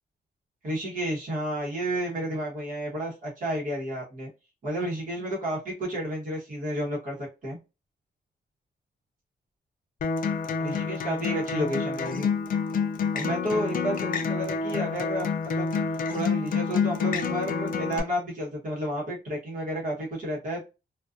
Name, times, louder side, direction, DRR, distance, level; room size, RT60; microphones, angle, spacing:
voice 1, 0.6-4.3 4.6-7.6 10.6-12.3 13.1-15.7 16.1-20.6, equal, 50° right, -4 dB, 1.0 m, -31 dB
Acoustic guitar, 10.0-18.0, left 5 dB, 50° left, 0.4 m, -28 dB
2.4 x 2.3 x 2.4 m, 0.28 s
wide cardioid pair, 145°, 18 cm